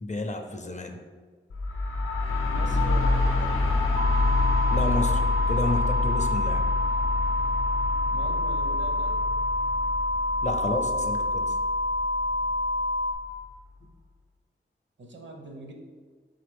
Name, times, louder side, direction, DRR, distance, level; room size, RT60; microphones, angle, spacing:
voice 1, 0.0-1.0 4.7-5.2 5.5-6.6 10.4-11.5, left 1 dB, 35° left, 5 dB, 0.5 m, -30 dB
sound 1, 1.5-13.2, left 3 dB, 85° left, 0.5 m, -27 dB
voice 2, 2.5-3.7 8.1-9.2 15.0-15.7, right 1 dB, 60° right, 2 dB, 0.7 m, -41 dB
sound 2, 4.0-13.1, left 1 dB, 40° right, 0.4 m, -27 dB
4.0 x 3.1 x 3.5 m, 1.5 s
cardioid pair, 40°, 21 cm